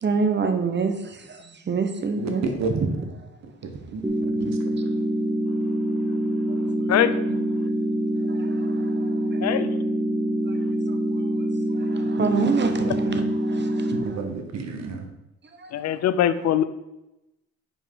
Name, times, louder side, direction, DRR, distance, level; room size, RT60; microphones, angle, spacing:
voice 1, 0.0-2.4 2.7-3.1 4.7-4.9 6.5-7.4 8.2-9.6 10.5-10.6 10.9-11.3 11.7-14.2 15.6-15.7, right 5 dB, 35° right, 6 dB, 1.1 m, -28 dB
voice 2, 3.6-4.5 14.0-15.1, right 4 dB, 60° right, 4 dB, 1.3 m, -32 dB
sound 1, 4.0-14.0, right 1 dB, 10° right, 0.7 m, -25 dB
voice 3, 15.7-16.6, left 10 dB, 60° left, 13 dB, 0.5 m, -21 dB
5.7 x 4.7 x 5.7 m, 0.93 s
cardioid pair, 90°, 30 cm